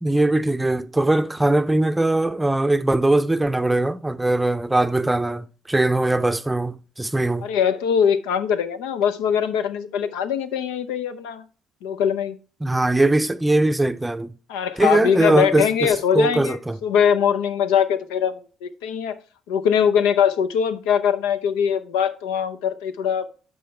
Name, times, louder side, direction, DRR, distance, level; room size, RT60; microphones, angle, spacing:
voice 1, 0.0-7.5 12.6-14.3 14.8-16.8, right 2 dB, 10° right, 0.5 m, -21 dB
voice 2, 7.4-11.4 11.8-12.4 14.5-19.1 19.5-23.2, left 8 dB, 90° left, 0.7 m, -22 dB
10.0 x 5.6 x 3.2 m
supercardioid pair, 75°, 0 cm